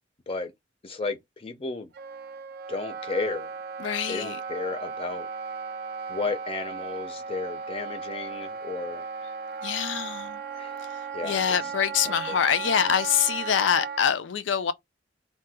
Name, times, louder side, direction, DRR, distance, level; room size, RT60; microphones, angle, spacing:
voice 1, 0.8-1.9 2.7-3.5 4.1-5.3 6.1-9.1 10.5-10.8 11.1-11.6 12.0-12.4, left 3 dB, 30° left, 0.5 m, -33 dB
Wind instrument woodwind instrument, 1.9-14.0, right 5 dB, 55° right, 0.4 m, -36 dB
voice 2, 3.8-4.4 9.6-10.4 11.2-14.7, left 8 dB, 90° left, 0.4 m, -25 dB
2.7 x 2.2 x 3.3 m
head